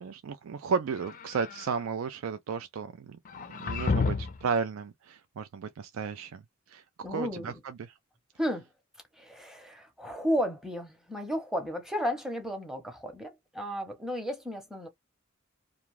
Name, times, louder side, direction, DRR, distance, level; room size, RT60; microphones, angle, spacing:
voice 1, 0.0-3.2 3.6-6.4 6.7-6.8 7.1-7.9, right 5 dB, 70° right, 0.4 m, -33 dB
sound 1, 0.9-1.8 3.3-4.5, left 4 dB, 40° left, 0.4 m, -31 dB
voice 2, 7.0-7.6 8.4-8.7 9.2-14.9, equal, ahead, 0.8 m, -33 dB
2.5 x 2.3 x 3.1 m
head